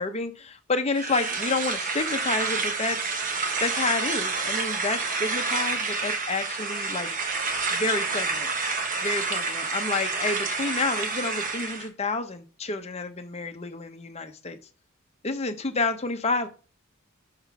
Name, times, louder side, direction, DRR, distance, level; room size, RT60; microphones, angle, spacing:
voice 1, 0.0-3.2 3.6-7.1 7.7-8.5 9.0-14.6 15.2-16.5, left 3 dB, 30° left, 7 dB, 0.8 m, -29 dB
sound 1, 0.9-11.9, right 4 dB, 40° right, 1.1 m, -29 dB
5.6 x 3.7 x 5.9 m, 0.36 s
head